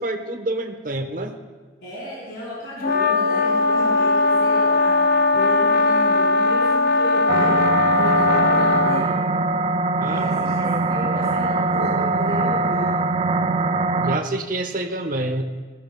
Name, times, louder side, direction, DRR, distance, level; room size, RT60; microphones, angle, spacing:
voice 1, 0.0-1.4 10.0-10.2 14.0-15.4, right 2 dB, 50° right, 5 dB, 1.0 m, -27 dB
voice 2, 1.8-5.0 5.3-7.6 8.0-9.2 10.0-12.9, equal, 75° left, -9 dB, 4.0 m, -33 dB
sound 1, 2.8-9.0, left 3 dB, 50° left, 0.6 m, -19 dB
sound 2, 7.3-14.2, right 3 dB, 30° right, 0.3 m, -22 dB
17.5 x 16.0 x 2.3 m, 1.4 s
head